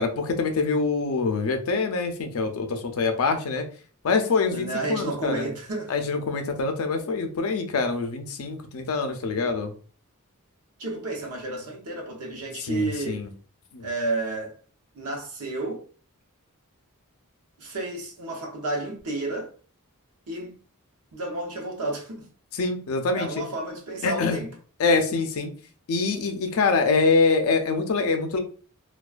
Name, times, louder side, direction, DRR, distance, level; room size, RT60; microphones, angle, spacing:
voice 1, 0.0-3.6 4.0-5.4 5.9-9.7 12.6-13.3 13.7-13.9 22.5-23.3 24.0-24.4 24.8-25.5 25.9-28.4, left 4 dB, 65° left, 0.4 m, -25 dB
voice 2, 4.5-5.9 10.8-13.2 13.8-14.6 14.9-15.8 17.6-19.5 20.3-20.5 21.1-22.3 23.1-24.5, right 2 dB, 85° right, 0.8 m, -31 dB
2.3 x 2.3 x 2.4 m
head